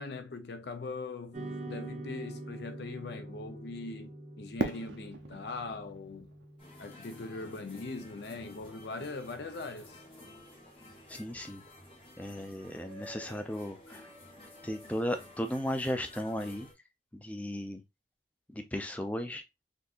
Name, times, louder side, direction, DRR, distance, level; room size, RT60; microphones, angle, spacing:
voice 1, 0.0-6.3 6.8-10.0, left 3 dB, 65° left, 0.5 m, -41 dB
sound 1, 1.3-9.9, right 1 dB, 40° right, 0.7 m, -46 dB
Fireworks, 4.6-7.6, right 3 dB, 80° right, 0.5 m, -38 dB
sound 2, 6.6-16.7, left 1 dB, 30° left, 1.0 m, -52 dB
voice 2, 11.1-11.6 12.2-14.1 14.4-16.7 17.1-17.8 18.5-19.4, equal, 10° left, 0.4 m, -36 dB
3.6 x 2.7 x 2.4 m
head